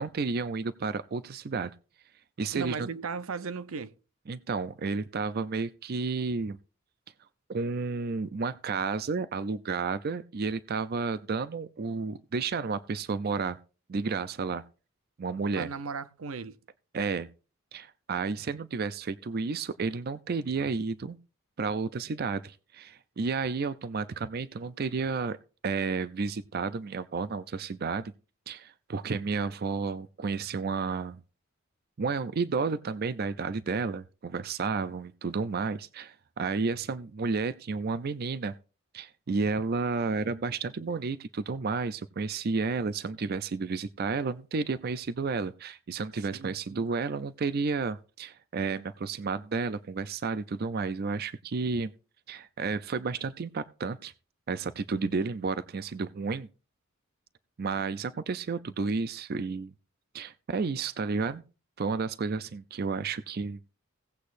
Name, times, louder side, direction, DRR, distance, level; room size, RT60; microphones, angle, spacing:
voice 1, 0.0-1.7 2.4-2.9 4.3-6.6 7.5-13.6 13.9-14.6 15.2-15.7 16.9-17.3 17.7-21.2 21.6-25.4 25.6-28.1 28.5-31.2 32.0-38.5 38.9-51.9 52.3-54.1 54.5-56.5 57.6-59.7 60.1-61.4 61.8-63.6, right 4 dB, 50° right, 0.4 m, -31 dB
voice 2, 2.5-3.9 15.6-16.6 46.3-46.9, right 5 dB, 90° right, 0.7 m, -36 dB
17.0 x 8.3 x 2.6 m
head